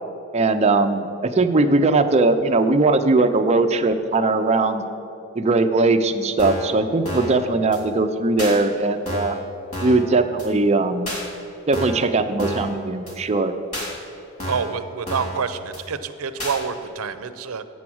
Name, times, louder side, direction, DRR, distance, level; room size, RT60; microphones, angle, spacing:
voice 1, 0.3-4.8 5.3-9.4 9.8-11.1 11.7-13.5, right 3 dB, 30° right, 7 dB, 0.5 m, -19 dB
sound 1, 6.4-6.7 7.0-7.4 7.7-7.8 8.4-8.5 9.1-9.4 9.7-10.0 10.4-10.5 11.1-11.2 11.7-12.1 12.4-12.7 13.1-13.2 13.7-13.9 14.4-14.7 15.1-15.4 15.7-15.8 16.4-16.6, equal, 35° left, 2.4 m, -30 dB
voice 2, 14.4-17.6, right 6 dB, 80° right, 11 dB, 0.5 m, -27 dB
7.8 x 7.2 x 6.2 m, 2.8 s
head